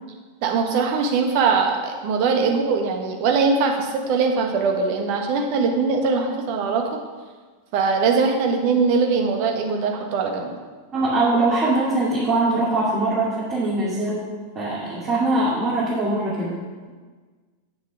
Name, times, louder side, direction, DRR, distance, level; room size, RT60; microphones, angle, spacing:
voice 1, 0.4-7.0 7.7-10.5, right 4 dB, 45° right, 3 dB, 1.5 m, -21 dB
voice 2, 10.9-14.3 14.5-16.6, right 2 dB, 25° right, -9 dB, 2.9 m, -22 dB
8.4 x 6.5 x 6.0 m, 1.4 s
figure-of-eight pair, 90°, 0 cm